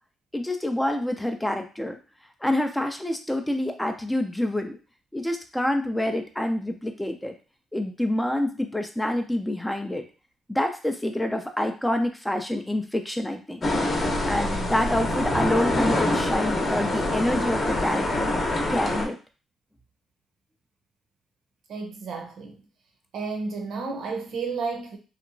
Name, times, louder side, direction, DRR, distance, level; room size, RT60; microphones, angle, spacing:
voice 1, 0.3-2.0 2.4-4.8 5.1-7.4 7.7-10.0 10.5-13.7 14.3-18.4 18.7-19.2, left 1 dB, 10° left, 0.4 m, -27 dB
sound 1, 13.6-19.1, left 1 dB, 35° left, 0.7 m, -25 dB
voice 2, 21.7-22.6 23.1-25.0, right 4 dB, 70° right, 0.7 m, -32 dB
2.8 x 2.2 x 2.5 m
cardioid pair, 90°, 0 cm